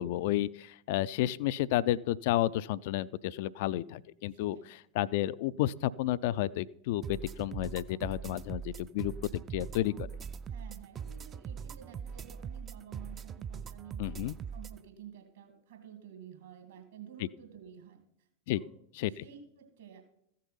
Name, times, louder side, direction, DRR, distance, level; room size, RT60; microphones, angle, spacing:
voice 1, 0.0-4.6 4.9-9.1 9.5-10.1 14.0-14.4 18.5-18.6 19.0-19.2, left 14 dB, 50° left, 18 dB, 0.3 m, -31 dB
voice 2, 4.3-4.8 5.0-5.1 10.5-14.0 14.5-18.0 18.5-18.7 19.1-20.0, right 8 dB, 60° right, 5 dB, 2.4 m, -51 dB
sound 1, 7.0-14.8, right 7 dB, 25° right, 0.4 m, -42 dB
14.5 x 6.5 x 5.6 m, 0.73 s
figure-of-eight pair, 90°, 0 cm